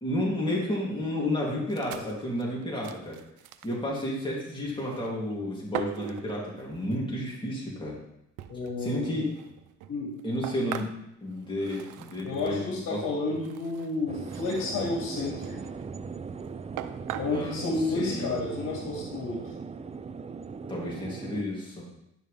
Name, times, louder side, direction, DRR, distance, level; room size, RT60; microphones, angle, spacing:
voice 1, 0.0-3.2 3.6-8.0 8.8-9.3 10.2-10.9 11.2-12.6 12.9-13.0 17.3-17.7 17.9-18.3 20.7-21.8, left 1 dB, 15° left, -5 dB, 3.0 m, -31 dB
sound 1, 1.7-3.8 4.6-5.3 5.7-7.0 7.7-7.8 8.4-12.7 13.3-15.0 15.4-16.0 16.4-16.5 16.8-17.4, right 12 dB, 90° right, 0.5 m, -41 dB
voice 2, 8.5-9.2 9.9-10.1 12.2-15.6 17.1-19.4, left 3 dB, 80° left, -2 dB, 2.2 m, -31 dB
sound 2, 14.1-21.4, right 5 dB, 20° right, 0.4 m, -39 dB
10.0 x 6.3 x 3.5 m, 0.81 s
cardioid pair, 90°, 30 cm